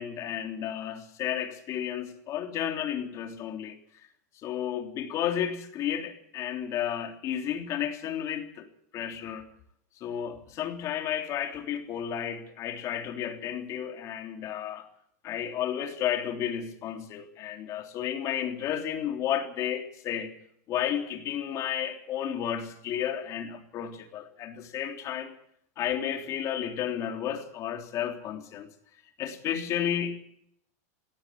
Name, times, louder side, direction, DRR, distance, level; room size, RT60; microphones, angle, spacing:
voice 1, 0.0-3.8 4.4-8.7 8.9-9.4 10.0-14.9 15.2-20.3 20.7-25.3 25.8-28.7 29.2-30.2, left 9 dB, 35° left, 3.4 m, -32 dB
18.0 x 17.0 x 8.6 m
supercardioid pair, 140°, 9 cm